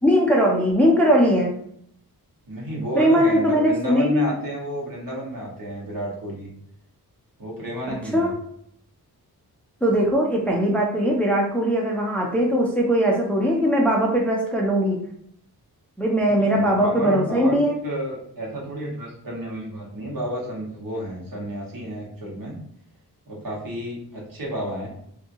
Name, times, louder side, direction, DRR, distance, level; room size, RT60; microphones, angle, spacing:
voice 1, 0.0-1.5 3.0-4.3 8.1-8.3 9.8-15.0 16.0-17.8, equal, 5° left, -2 dB, 0.5 m, -20 dB
voice 2, 2.5-6.5 7.4-8.3 16.4-17.5 17.8-22.6 23.3-24.9, right 1 dB, 60° right, -4 dB, 1.3 m, -31 dB
2.7 x 2.6 x 2.6 m, 0.68 s
wide cardioid pair, 90°, 38 cm